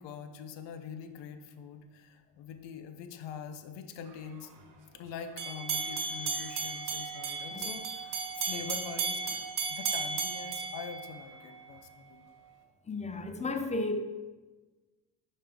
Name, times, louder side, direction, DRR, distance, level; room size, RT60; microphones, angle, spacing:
voice 1, 0.0-4.5 4.9-9.4 9.7-12.3, left 7 dB, 70° left, 8 dB, 0.7 m, -44 dB
sound 1, 5.4-11.6, right 5 dB, 45° right, 0.9 m, -35 dB
voice 2, 12.9-14.0, left 2 dB, 15° left, 7 dB, 0.4 m, -33 dB
5.5 x 5.1 x 3.4 m, 1.3 s
cardioid pair, 90°, 45 cm